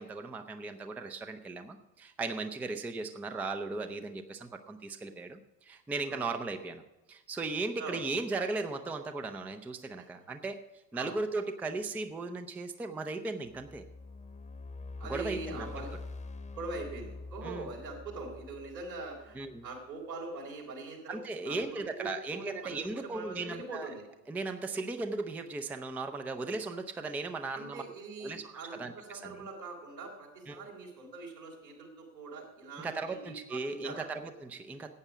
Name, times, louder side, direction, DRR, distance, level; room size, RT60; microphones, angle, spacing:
voice 1, 0.0-6.8 7.1-10.6 10.9-13.8 15.1-15.7 17.4-17.7 19.3-19.6 21.1-23.9 24.3-27.8 28.2-29.4 30.5-30.6 32.8-34.9, right 3 dB, 5° right, 8 dB, 0.4 m, -37 dB
sound 1, 13.5-19.7, left 3 dB, 15° left, 1.0 m, -45 dB
voice 2, 15.0-15.9 16.5-24.0 27.5-34.1, right 3 dB, 80° right, -2 dB, 3.8 m, -43 dB
15.0 x 8.8 x 4.9 m, 1.0 s
figure-of-eight pair, 75°, 50 cm